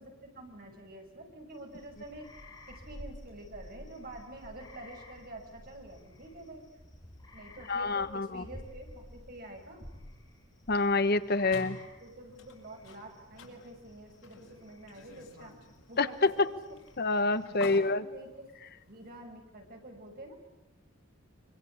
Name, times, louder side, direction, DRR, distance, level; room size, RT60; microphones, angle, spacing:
voice 1, 0.0-6.6 7.3-9.9 12.0-15.6 15.9-16.5 17.5-18.5 18.9-20.4, right 1 dB, 50° right, 3 dB, 6.5 m, -48 dB
sound 1, 1.5-17.7, left 1 dB, 20° left, 7.9 m, -53 dB
voice 2, 7.7-8.4 10.7-11.8 16.0-16.5 17.0-18.0, left 3 dB, 50° left, 13 dB, 1.1 m, -27 dB
sound 2, 11.5-19.3, left 2 dB, 85° left, 5.1 m, -50 dB
25.5 x 24.5 x 8.8 m, 0.90 s
head